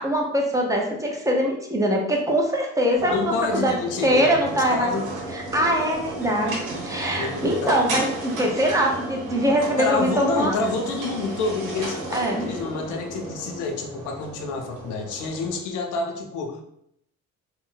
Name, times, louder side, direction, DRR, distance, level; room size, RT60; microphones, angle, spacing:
voice 1, 0.0-3.8 4.0-4.9 5.3-6.6 6.8-10.6 12.1-12.5, equal, 10° right, 0 dB, 0.7 m, -23 dB
sound 1, 3.0-15.6, right 2 dB, 85° right, 0.9 m, -33 dB
voice 2, 3.1-5.1 7.2-7.7 9.8-16.6, left 3 dB, 85° left, 3 dB, 0.5 m, -28 dB
2.4 x 2.1 x 3.8 m, 0.74 s
cardioid pair, 90°, 30 cm